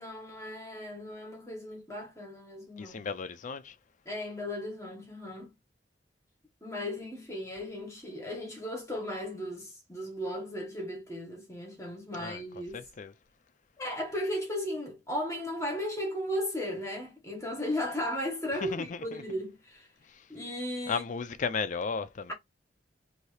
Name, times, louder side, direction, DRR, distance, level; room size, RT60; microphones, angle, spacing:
voice 1, 0.0-3.1 4.0-5.5 6.6-12.8 13.8-19.9 20.3-21.0, left 1 dB, 15° left, 1.3 m, -36 dB
voice 2, 2.8-3.8 12.1-12.4 12.7-13.1 18.6-19.2 20.0-20.3 20.9-22.3, left 5 dB, 45° left, 0.4 m, -35 dB
2.8 x 2.7 x 3.2 m
head